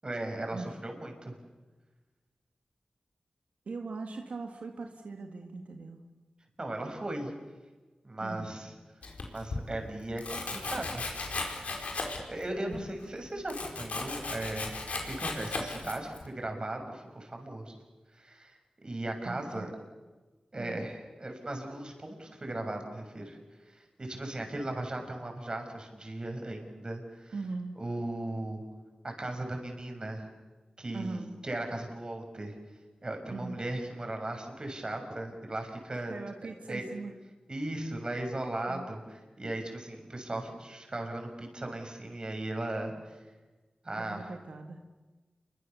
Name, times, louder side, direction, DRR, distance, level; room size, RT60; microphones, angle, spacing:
voice 1, 0.0-1.3 6.6-7.3 8.0-8.7 9.3-11.3 12.3-14.7 15.0-17.8 18.1-19.7 20.5-23.4 23.6-27.3 27.8-28.6 29.0-30.3 30.8-32.6 33.0-36.1 36.7-36.9 37.5-43.2 43.8-44.3, right 1 dB, 40° right, 4 dB, 6.6 m, -37 dB
voice 2, 3.7-6.0 8.2-8.5 12.6-12.9 19.2-19.7 20.6-20.8 27.3-27.8 30.9-31.4 33.3-33.6 36.1-37.1 38.7-38.9 42.9-43.0 44.0-44.8, right 3 dB, 85° right, 3 dB, 1.9 m, -40 dB
Domestic sounds home sounds, 9.0-9.6 10.2-12.4 12.7-16.3, left 3 dB, 85° left, 4.7 m, -36 dB
28.5 x 24.0 x 7.1 m, 1.2 s
wide cardioid pair, 65°, 2 cm